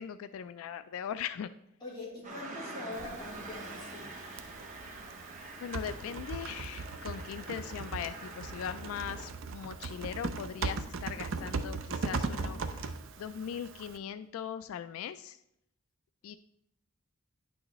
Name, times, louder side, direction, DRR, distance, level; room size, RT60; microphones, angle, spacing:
voice 1, 0.0-1.5 5.6-12.9 13.2-15.4 16.2-16.4, left 8 dB, 80° left, 12 dB, 0.3 m, -40 dB
voice 2, 1.8-4.1, left 2 dB, 20° left, -7 dB, 3.1 m, -43 dB
sound 1, 2.2-9.3, right 2 dB, 40° right, 1.4 m, -46 dB
Typing, 2.9-14.0, right 4 dB, 65° right, 0.5 m, -39 dB
sound 2, 9.4-9.7 10.4-10.8 11.4-11.9 12.4-12.9 14.3-14.4, equal, ahead, 1.4 m, -48 dB
9.7 x 6.2 x 3.0 m, 0.79 s
head